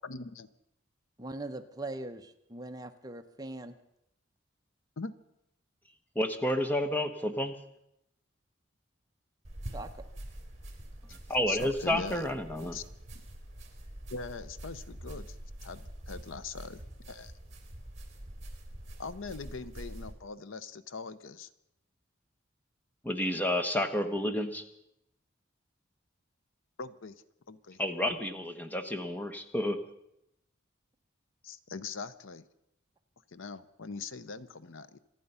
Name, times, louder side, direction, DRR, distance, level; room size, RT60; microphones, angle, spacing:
voice 1, 0.0-0.5 5.0-5.1 11.5-12.3 12.6-12.8 14.1-15.4 15.6-17.3 19.0-21.5 26.8-27.1 27.5-27.8 31.4-32.4 33.3-35.0, left 4 dB, 85° left, 15 dB, 0.7 m, -41 dB
voice 2, 1.2-3.8 9.7-9.9, right 2 dB, 20° right, 7 dB, 0.8 m, -41 dB
voice 3, 6.1-7.5 11.3-12.8 23.0-24.6 27.8-29.8, left 1 dB, 10° left, 6 dB, 1.1 m, -30 dB
sound 1, 9.4-20.1, right 1 dB, 35° right, 2.8 m, -45 dB
26.0 x 9.3 x 5.6 m, 0.81 s
head